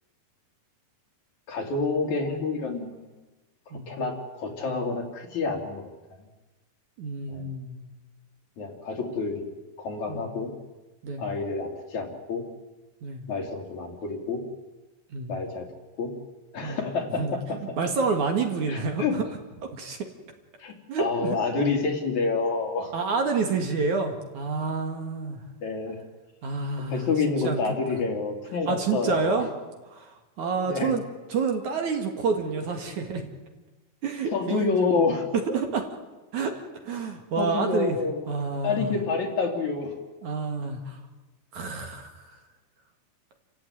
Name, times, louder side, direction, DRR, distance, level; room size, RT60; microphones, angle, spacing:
voice 1, 1.5-3.1 3.7-5.9 7.3-7.5 8.6-10.5 11.2-12.4 13.3-14.4 15.3-15.7 16.0-16.1 16.5-17.6 18.7-19.2 20.6-22.9 25.6-26.0 26.9-29.5 30.6-31.0 34.3-35.3 37.4-38.2 38.6-40.0, left 4 dB, 50° left, 3 dB, 3.7 m, -28 dB
voice 2, 7.0-7.9 10.1-10.3 11.0-11.2 13.0-13.3 15.1-15.4 16.6-16.8 17.2-17.3 17.8-19.2 19.7-20.0 20.9-21.3 22.9-25.4 26.4-27.1 27.4-27.6 27.9-28.0 28.7-29.5 29.9-31.0 31.3-33.3 34.0-35.2 35.5-35.9 36.3-36.5 36.8-38.0 38.3-38.9 40.2-41.0 41.5-42.3, right 4 dB, 55° right, 4 dB, 3.1 m, -28 dB
29.5 x 15.5 x 9.4 m, 1.2 s
omnidirectional pair, 4.5 m